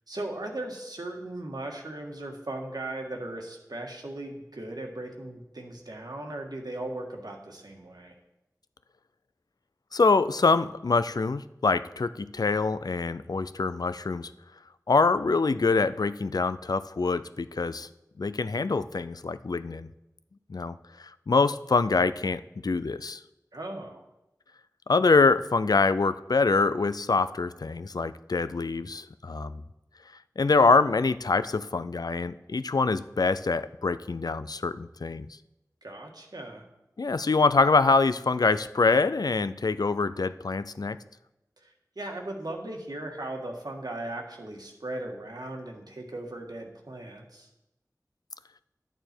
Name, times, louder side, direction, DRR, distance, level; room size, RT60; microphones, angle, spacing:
voice 1, 0.1-8.2 23.5-24.0 35.8-36.6 41.6-47.5, right 1 dB, 75° right, 1 dB, 1.7 m, -38 dB
voice 2, 9.9-14.3 14.9-17.9 18.2-19.9 20.5-23.2 24.9-29.6 30.4-35.3 37.0-41.0, left 4 dB, 70° left, 14 dB, 0.4 m, -25 dB
11.5 x 8.9 x 4.5 m, 0.91 s
wide cardioid pair, 45°, 7 cm